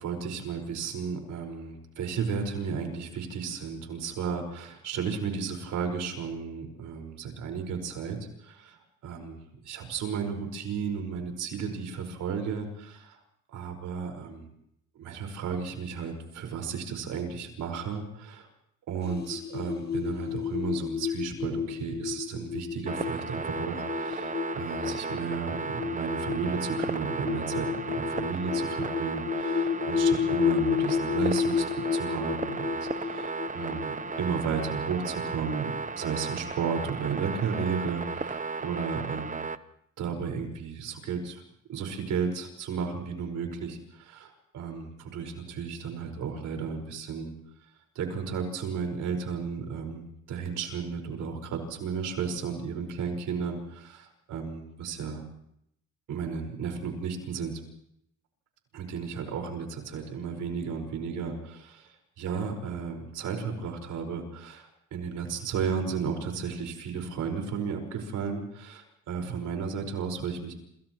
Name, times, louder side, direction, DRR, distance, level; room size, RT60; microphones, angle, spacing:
voice 1, 0.0-9.4 9.6-13.2 13.5-14.5 15.0-18.5 18.9-31.7 31.9-39.4 40.0-41.4 41.7-47.3 48.0-55.2 56.1-57.6 58.7-61.9 62.2-70.5, right 6 dB, 80° right, 4 dB, 5.2 m, -34 dB
sound 1, 19.0-35.3, left 7 dB, 35° left, 1.6 m, -31 dB
sound 2, 22.9-39.6, right 4 dB, 25° right, 1.0 m, -35 dB
29.0 x 28.5 x 3.1 m, 0.74 s
cardioid pair, 90°, 30 cm